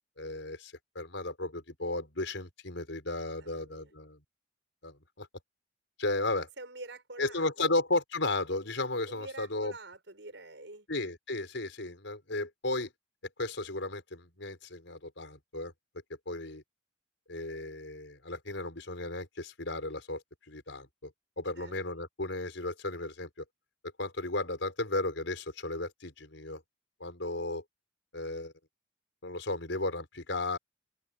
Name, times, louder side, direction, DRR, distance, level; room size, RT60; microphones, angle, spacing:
voice 1, 0.2-4.2 4.8-5.3 6.0-6.5 7.2-9.7 10.9-12.9 13.4-15.7 16.3-16.6 17.3-20.2 20.5-21.1 21.4-23.3 24.0-26.6 27.0-27.6 28.1-28.5 29.2-30.6, left 2 dB, 75° left, 5.0 m, -34 dB
voice 2, 3.4-3.9 6.6-7.8 9.1-10.9 21.6-21.7, right 2 dB, 70° right, 6.1 m, -46 dB
open air
head